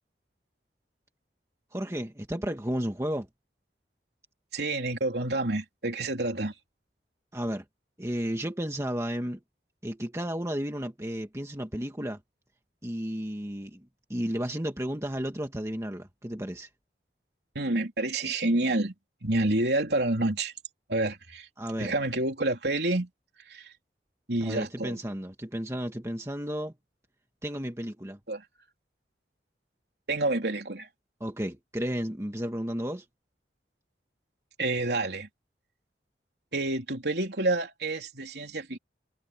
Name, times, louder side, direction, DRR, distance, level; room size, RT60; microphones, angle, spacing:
voice 1, 1.7-3.3 7.3-7.6 8.0-9.4 9.8-12.2 12.8-16.7 21.6-21.9 24.4-26.7 27.4-28.2 31.2-33.0, equal, 15° right, 1.6 m, -33 dB
voice 2, 4.5-6.5 17.6-18.9 19.2-20.5 20.9-21.5 21.8-23.1 23.5-23.7 24.3-25.0 28.3-28.4 30.1-30.9 34.6-35.3 36.5-38.8, right 2 dB, 70° right, 3.6 m, -28 dB
head